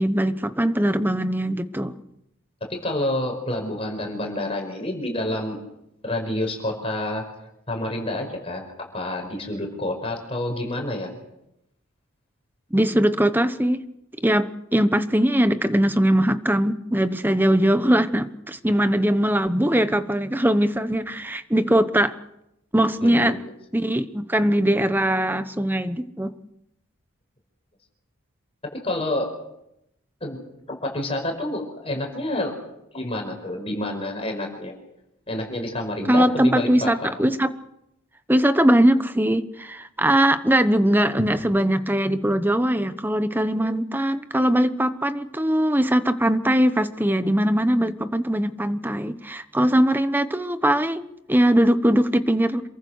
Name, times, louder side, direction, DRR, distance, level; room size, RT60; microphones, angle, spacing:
voice 1, 0.0-1.9 12.7-13.8 14.2-22.2 22.7-23.4 23.7-26.3 36.0-37.5 38.3-52.6, right 1 dB, 10° right, 11 dB, 1.0 m, -21 dB
voice 2, 2.7-5.6 6.0-7.2 7.7-8.6 8.9-11.1 23.0-23.4 28.8-29.3 30.2-32.6 32.9-34.7 35.3-37.1, left 1 dB, 25° left, 2 dB, 5.2 m, -28 dB
27.5 x 23.0 x 6.5 m, 0.83 s
head